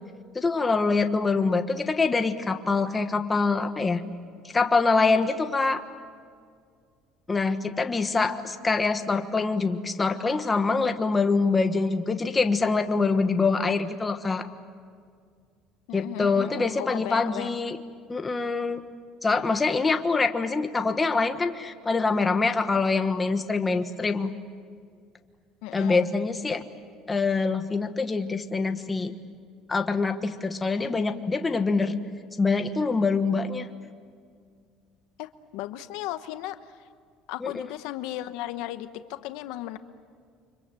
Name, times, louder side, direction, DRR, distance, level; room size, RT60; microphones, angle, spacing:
voice 1, 0.3-4.0 4.5-5.8 7.3-14.5 15.9-17.8 18.1-18.8 19.2-24.3 25.7-26.6 27.1-29.1 29.7-32.0 32.4-33.7 37.4-37.7, left 4 dB, 15° left, 7 dB, 1.4 m, -25 dB
voice 2, 15.9-17.6 25.6-26.0 35.2-36.6 37.3-39.8, left 14 dB, 80° left, 10 dB, 1.0 m, -36 dB
30.0 x 25.0 x 7.7 m, 2.1 s
cardioid pair, 130°, 0 cm